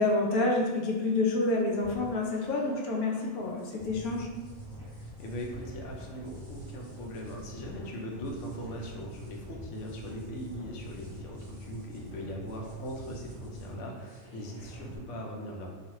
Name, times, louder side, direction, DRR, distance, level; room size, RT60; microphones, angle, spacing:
voice 1, 0.0-4.3, left 2 dB, 85° left, 0 dB, 1.1 m, -28 dB
sound 1, 1.7-15.0, equal, 20° left, 0.7 m, -45 dB
voice 2, 5.0-15.7, equal, 65° left, 0 dB, 0.9 m, -40 dB
3.0 x 2.4 x 2.9 m, 1.3 s
omnidirectional pair, 1.5 m